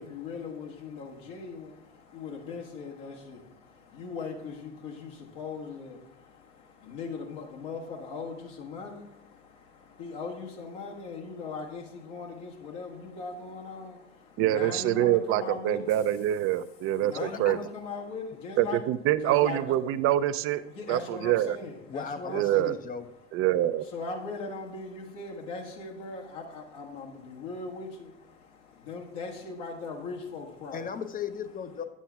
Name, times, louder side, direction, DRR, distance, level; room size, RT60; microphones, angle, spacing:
voice 1, 0.0-16.0 16.9-18.8 19.2-19.8 20.5-22.8 23.8-30.9, left 4 dB, 65° left, -1 dB, 1.6 m, -40 dB
voice 2, 14.4-17.6 18.6-20.6 20.9-21.6 22.3-22.8 23.3-23.9, right 13 dB, 35° right, 14 dB, 0.4 m, -25 dB
voice 3, 17.2-17.6 21.9-23.1 30.7-31.8, left 6 dB, 20° left, 10 dB, 0.6 m, -36 dB
9.1 x 7.3 x 3.5 m, 0.88 s
hypercardioid pair, 75°, 38 cm